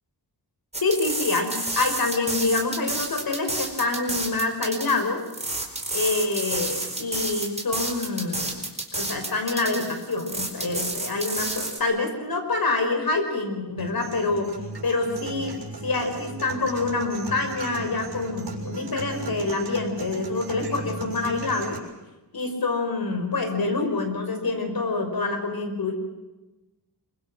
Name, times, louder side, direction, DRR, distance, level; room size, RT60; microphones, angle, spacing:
sound 1, 0.7-11.8, right 2 dB, 15° right, 4.7 m, -30 dB
voice 1, 0.8-5.2 5.9-8.6 8.9-14.5 14.8-15.6 15.8-21.8 22.3-25.9, left 3 dB, 60° left, 6 dB, 5.5 m, -26 dB
sound 2, 13.8-21.8, right 3 dB, 75° right, 6.5 m, -36 dB
26.0 x 24.5 x 6.4 m, 1.1 s
wide cardioid pair, 110°, 41 cm